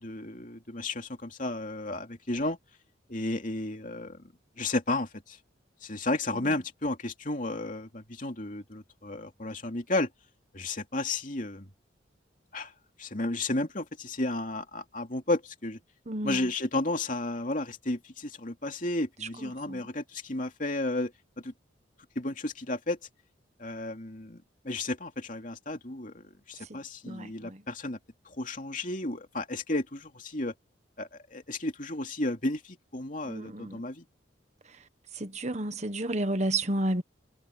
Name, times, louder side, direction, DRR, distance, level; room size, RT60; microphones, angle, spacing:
voice 1, 0.0-2.6 3.1-5.4 5.8-10.1 10.5-11.7 12.5-12.7 13.0-15.8 16.2-21.5 22.1-23.0 23.6-28.0 28.2-30.5 31.0-34.0, left 2 dB, 45° left, 2.8 m, -33 dB
voice 2, 16.1-16.4 19.4-19.8 27.1-27.6 33.3-33.8 35.2-37.0, right 1 dB, 35° right, 1.4 m, -31 dB
head